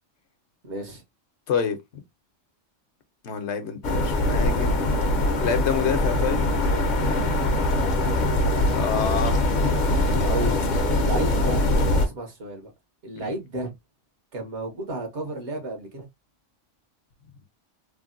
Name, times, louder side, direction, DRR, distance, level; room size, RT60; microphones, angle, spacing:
voice 1, 0.6-1.0 7.7-7.9 10.2-10.6 10.8-11.7 12.0-12.7 13.0-13.7 14.3-16.1, right 2 dB, 65° right, 1.3 m, -32 dB
voice 2, 1.5-2.0 3.2-4.8 5.4-6.4 8.7-9.4 10.1-10.4 13.2-13.3, left 7 dB, 70° left, 1.0 m, -28 dB
sound 1, 3.8-12.1, left 1 dB, 50° left, 0.7 m, -22 dB
3.3 x 2.1 x 2.4 m
omnidirectional pair, 1.2 m